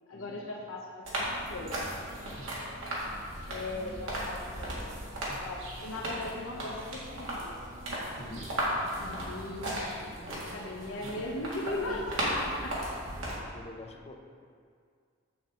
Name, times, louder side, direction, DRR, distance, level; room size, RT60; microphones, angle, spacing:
voice 1, 0.1-0.8 1.1-1.8 3.5-4.9 5.4-7.9 8.9-9.8 10.5-12.7, left 2 dB, 85° left, -3 dB, 0.8 m, -38 dB
sound 1, 1.0-13.3, right 1 dB, 70° right, 2.0 m, -36 dB
voice 2, 2.1-2.6 8.2-8.5 8.9-9.1 10.0-10.5 13.1-14.2, left 2 dB, 30° left, 3 dB, 0.7 m, -48 dB
sound 2, 2.4-3.1 5.3-6.1 8.2-8.9 11.0-11.8, right 1 dB, 40° right, 0.7 m, -53 dB
7.9 x 7.3 x 3.7 m, 2.1 s
head